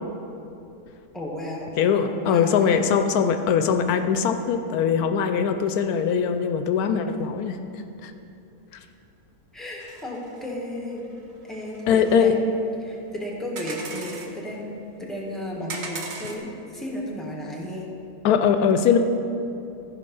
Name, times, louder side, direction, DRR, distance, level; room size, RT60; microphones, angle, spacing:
voice 1, 1.1-2.9 9.5-11.0 11.4-12.4 12.8-14.7 15.0-17.9, left 1 dB, ahead, -2 dB, 1.5 m, -33 dB
voice 2, 1.8-7.6 11.9-12.4 18.2-19.0, left 7 dB, 80° left, 7 dB, 1.1 m, -21 dB
sound 1, 9.8-10.5 11.0-11.2 11.5-12.3 13.6-14.3 15.7-16.4, right 4 dB, 50° right, 1.0 m, -37 dB
14.0 x 5.5 x 5.4 m, 2.9 s
omnidirectional pair, 1.6 m